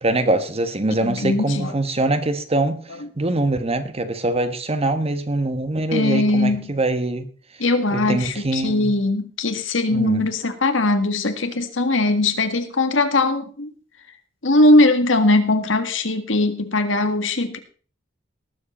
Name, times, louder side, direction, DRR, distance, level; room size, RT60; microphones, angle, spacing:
voice 1, 0.0-2.8 3.2-7.3 7.9-8.9 9.9-10.2, right 2 dB, 30° right, 10 dB, 1.4 m, -23 dB
voice 2, 1.0-1.7 2.9-3.1 5.9-6.7 7.6-13.7 14.4-17.6, left 2 dB, 75° left, 8 dB, 1.8 m, -20 dB
19.0 x 7.7 x 4.3 m, 0.42 s
head